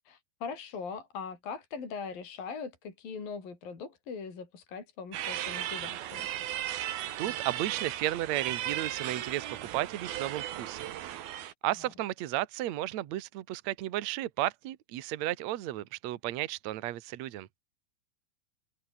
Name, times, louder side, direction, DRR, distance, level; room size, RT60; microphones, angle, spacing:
voice 1, 0.0-6.3 11.6-11.9, left 5 dB, 50° left, 6.6 m, -41 dB
sound 1, 5.1-11.5, right 12 dB, 65° right, 3.1 m, -36 dB
voice 2, 7.2-9.5 9.7-10.9 11.6-17.5, right 14 dB, 85° right, 1.5 m, -33 dB
omnidirectional pair, 5.2 m